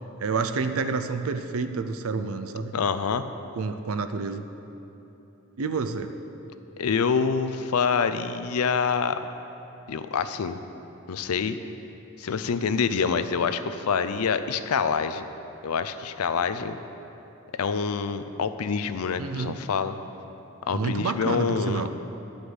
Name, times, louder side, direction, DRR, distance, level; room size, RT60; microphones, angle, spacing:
voice 1, 0.2-2.8 3.5-4.5 5.6-6.1 19.2-19.6 20.7-21.9, right 4 dB, 70° right, 9 dB, 0.5 m, -29 dB
voice 2, 2.7-3.2 6.8-9.2 9.9-10.6 11.1-11.6 12.2-15.2 15.6-16.8 17.6-19.9 20.7-21.8, left 5 dB, 90° left, 11 dB, 0.5 m, -26 dB
11.5 x 5.2 x 8.0 m, 3.0 s
head